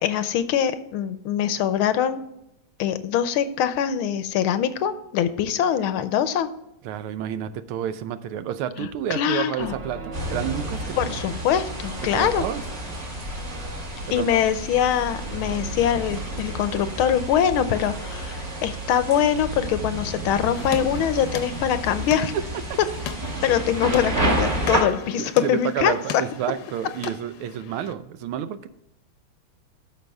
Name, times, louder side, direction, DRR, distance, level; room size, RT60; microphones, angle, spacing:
voice 1, 0.0-2.2 2.8-6.5 8.8-9.7 11.0-12.4 14.1-22.3 23.4-25.9, left 9 dB, 85° left, 11 dB, 1.6 m, -23 dB
voice 2, 6.8-11.2 12.1-12.6 14.2-14.4 22.3-22.4 25.2-28.7, right 10 dB, 90° right, 12 dB, 1.6 m, -30 dB
sound 1, 9.6-23.3, right 3 dB, 60° right, 1.9 m, -40 dB
sound 2, 10.1-24.8, right 1 dB, 45° right, 2.6 m, -30 dB
sound 3, 20.5-27.9, left 8 dB, 65° left, 1.1 m, -38 dB
13.0 x 5.6 x 3.5 m, 0.83 s
omnidirectional pair, 2.3 m